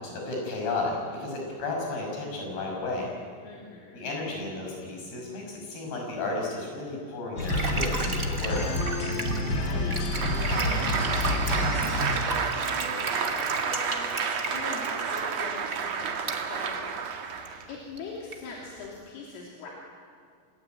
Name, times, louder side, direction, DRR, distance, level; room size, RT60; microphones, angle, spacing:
voice 1, 0.0-3.1 3.9-8.6, left 2 dB, 50° left, 0 dB, 8.0 m, -33 dB
voice 2, 3.4-4.1 9.5-16.9 17.4-19.7, left 4 dB, 75° left, -3 dB, 5.5 m, -42 dB
sound 1, 7.4-12.4, left 1 dB, 35° left, 2.2 m, -28 dB
sound 2, 7.4-16.4 17.0-17.1 17.3-17.6 18.0-18.1 18.3-18.9, right 2 dB, 45° right, 1.0 m, -35 dB
Applause, 10.0-17.7, right 6 dB, 85° right, 1.4 m, -30 dB
28.5 x 20.0 x 9.3 m, 2.1 s
omnidirectional pair, 5.9 m